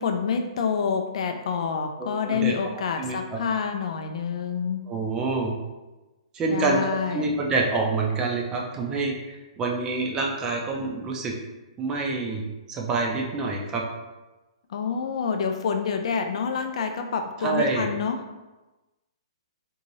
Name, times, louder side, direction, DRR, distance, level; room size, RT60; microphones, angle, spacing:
voice 1, 0.0-4.8 6.5-7.3 14.7-18.2, left 6 dB, 65° left, 5 dB, 0.3 m, -27 dB
voice 2, 2.0-2.5 3.0-3.4 4.9-5.5 6.3-6.8 7.1-11.3 11.8-12.4 12.7-13.8 17.4-17.9, right 3 dB, 20° right, -1 dB, 0.5 m, -27 dB
2.6 x 2.5 x 3.0 m, 1.1 s
hypercardioid pair, 145°, 3 cm